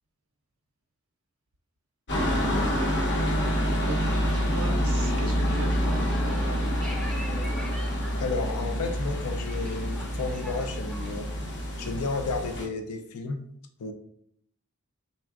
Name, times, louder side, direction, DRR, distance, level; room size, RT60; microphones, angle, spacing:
sound 1, 2.1-12.7, equal, 55° left, 0.8 m, -27 dB
voice 1, 3.9-6.9, right 3 dB, 65° right, 2 dB, 0.5 m, -39 dB
sound 2, 4.7-11.1, equal, 5° left, 0.5 m, -45 dB
voice 2, 8.2-11.3 11.8-13.4 13.8-13.9, left 3 dB, 85° left, 5 dB, 0.4 m, -32 dB
4.1 x 3.4 x 2.4 m, 0.69 s
head